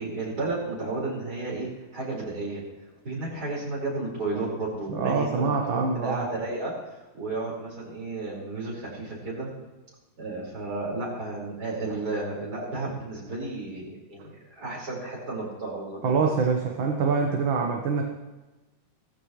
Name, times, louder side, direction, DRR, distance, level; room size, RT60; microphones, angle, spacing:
voice 1, 0.0-2.6 3.0-9.5 10.2-16.3, right 2 dB, 45° right, -5 dB, 5.6 m, -33 dB
voice 2, 4.9-6.3 16.0-18.1, right 5 dB, 75° right, 1 dB, 2.0 m, -25 dB
18.0 x 14.5 x 3.2 m, 1.1 s
omnidirectional pair, 2.2 m